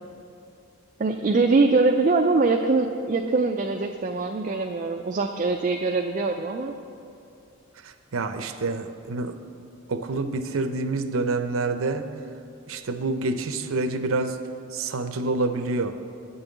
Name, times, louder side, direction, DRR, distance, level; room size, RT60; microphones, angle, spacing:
voice 1, 1.0-6.7, right 3 dB, 35° right, 4 dB, 0.4 m, -23 dB
voice 2, 7.8-9.4 9.9-12.1 12.7-14.4 14.7-15.9, right 3 dB, 80° right, 9 dB, 0.6 m, -27 dB
9.0 x 5.5 x 7.9 m, 2.6 s
head